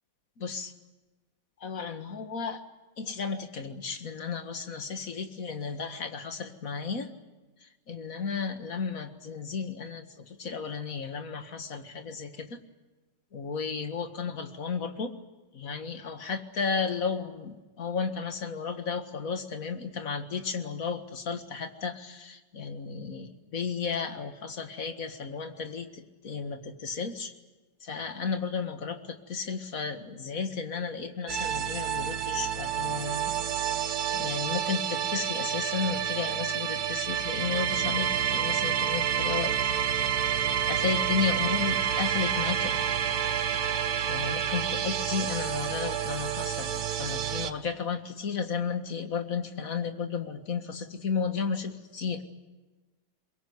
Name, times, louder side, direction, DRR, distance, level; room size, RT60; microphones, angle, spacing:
voice 1, 0.4-0.7 1.6-2.6 3.0-7.1 7.6-12.6 13.3-15.1 15.5-27.3 27.8-33.3 33.8-39.7 40.7-42.8 44.1-52.2, left 5 dB, 50° left, 8 dB, 2.1 m, -33 dB
sound 1, 31.3-47.5, right 9 dB, 60° right, 1.4 m, -29 dB
23.0 x 22.0 x 9.4 m, 1.2 s
omnidirectional pair, 2.0 m